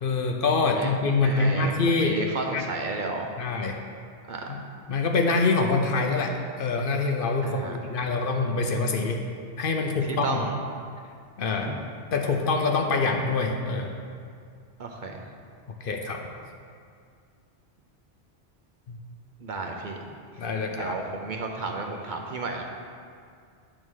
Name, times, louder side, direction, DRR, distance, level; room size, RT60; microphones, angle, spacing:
voice 1, 0.0-2.2 2.5-2.6 3.4-3.8 4.5-4.6 4.9-9.2 9.6-10.4 11.4-11.7 12.1-13.9 15.8-16.2 18.9-19.0 20.4-21.0, left 3 dB, 60° left, 3 dB, 0.8 m, -25 dB
voice 2, 1.2-3.3 4.3-4.5 7.4-7.8 10.2-10.5 11.6-11.8 14.8-15.3 19.4-20.0 20.7-22.6, right 3 dB, 55° right, 2 dB, 0.7 m, -33 dB
8.8 x 3.8 x 6.3 m, 2.2 s
omnidirectional pair, 1.1 m